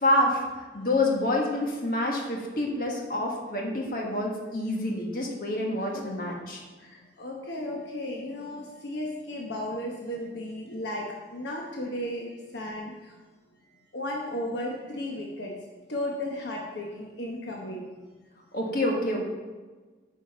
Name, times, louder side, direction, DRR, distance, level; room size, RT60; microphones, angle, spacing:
voice 1, 0.0-6.6 18.5-19.2, left 1 dB, 50° left, -1 dB, 1.5 m, -27 dB
voice 2, 6.8-13.2 13.9-15.6 15.9-17.9, left 1 dB, 70° left, -1 dB, 1.1 m, -35 dB
8.8 x 5.0 x 5.3 m, 1.3 s
head